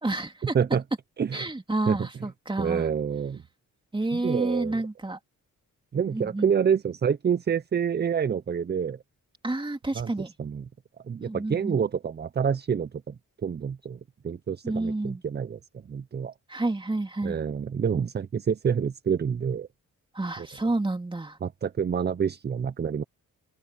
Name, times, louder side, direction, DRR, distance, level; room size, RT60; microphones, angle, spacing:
voice 1, 0.0-0.6 1.3-2.9 3.9-5.2 6.1-6.5 9.4-10.3 11.2-11.8 14.6-15.2 16.5-17.4 20.1-21.4, right 2 dB, 15° right, 2.6 m, -29 dB
voice 2, 1.2-1.5 1.9-2.0 2.6-3.4 4.1-4.7 5.9-9.0 10.0-10.1 10.4-10.7 11.1-13.2 13.4-15.6 15.9-16.3 17.2-19.7 20.4-20.5 21.4-23.0, right 7 dB, 30° right, 0.5 m, -27 dB
open air
cardioid pair, 110°, 33 cm